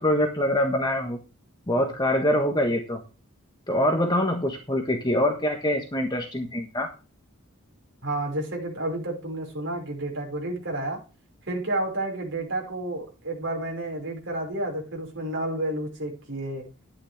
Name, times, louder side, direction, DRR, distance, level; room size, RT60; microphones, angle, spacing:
voice 1, 0.0-1.2 1.7-3.0 3.7-6.9, left 1 dB, 20° left, 3 dB, 1.5 m, -24 dB
voice 2, 8.0-11.0 11.5-16.7, right 1 dB, 55° right, 0 dB, 5.9 m, -30 dB
12.5 x 9.7 x 3.6 m, 0.32 s
head